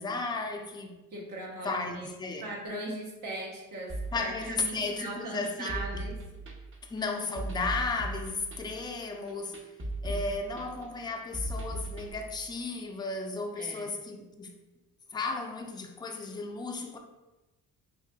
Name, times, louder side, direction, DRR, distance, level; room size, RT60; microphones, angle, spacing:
voice 1, 0.0-1.0 1.6-2.5 4.1-6.1 6.8-9.6 10.0-14.5 15.1-17.0, left 3 dB, 15° left, 0.4 m, -34 dB
voice 2, 1.1-2.1 2.4-6.2 10.1-10.3 13.6-13.9, right 2 dB, 65° right, 1.0 m, -39 dB
sound 1, 3.9-12.1, right 1 dB, 35° right, 0.8 m, -38 dB
4.7 x 2.7 x 2.2 m
cardioid pair, 90°, 35 cm